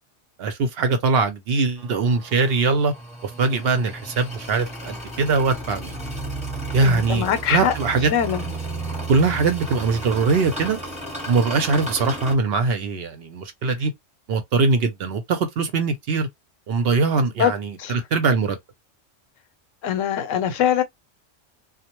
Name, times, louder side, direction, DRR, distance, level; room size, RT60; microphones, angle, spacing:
voice 1, 0.4-2.9 3.2-6.0 6.7-8.1 9.1-10.8 11.3-13.9 14.3-16.3 16.7-18.6, right 4 dB, 60° right, 0.7 m, -22 dB
sound 1, 1.8-12.3, right 2 dB, 5° right, 0.8 m, -33 dB
voice 2, 6.8-7.7 8.1-8.5 17.4-17.5 17.8-17.9 19.8-20.8, left 9 dB, 90° left, 1.0 m, -22 dB
2.2 x 2.0 x 2.9 m
omnidirectional pair, 1.3 m